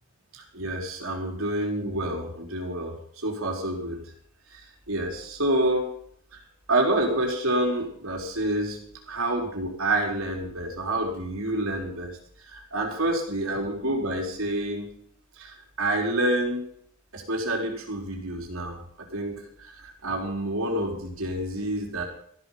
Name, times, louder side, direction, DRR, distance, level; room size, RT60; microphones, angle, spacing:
voice 1, 0.3-4.0 4.9-5.9 6.7-8.8 9.1-12.1 12.5-14.9 15.4-16.7 17.1-18.8 19.1-22.0, right 1 dB, 75° right, 1 dB, 4.2 m, -28 dB
15.0 x 11.5 x 5.8 m, 0.64 s
head